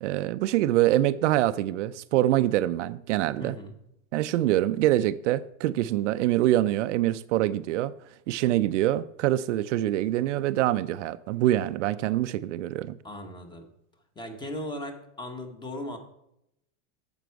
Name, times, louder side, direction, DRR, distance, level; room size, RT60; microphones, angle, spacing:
voice 1, 0.0-3.6 4.1-7.9 8.3-13.0, right 14 dB, 70° right, 0.5 m, -25 dB
voice 2, 3.4-3.8 13.0-13.7 14.2-16.0, left 1 dB, 10° left, 1.1 m, -37 dB
9.2 x 7.4 x 4.6 m
supercardioid pair, 140°, 37 cm